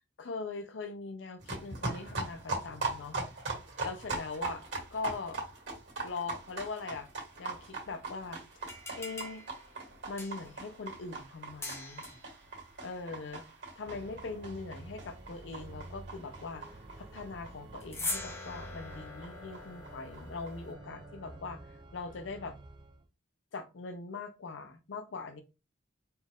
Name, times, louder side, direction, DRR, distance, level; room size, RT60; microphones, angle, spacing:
voice 1, 0.2-3.2 3.8-4.6 4.9-5.4 6.0-7.1 7.4-8.4 8.9-9.4 10.1-12.0 12.8-13.4 13.8-16.6 17.0-22.6 23.5-25.4, left 4 dB, 75° left, 0.5 m, -41 dB
sound 1, 1.4-18.7 18.9-19.0 19.2-19.3 19.5-19.6 19.8-20.5, right 3 dB, 65° right, 1.9 m, -41 dB
sound 2, 8.6-10.6 11.6-12.3 17.8-21.4, left 2 dB, 15° left, 0.7 m, -42 dB
Organ, 13.8-23.1, right 2 dB, 25° right, 0.4 m, -50 dB
4.4 x 2.4 x 3.5 m
head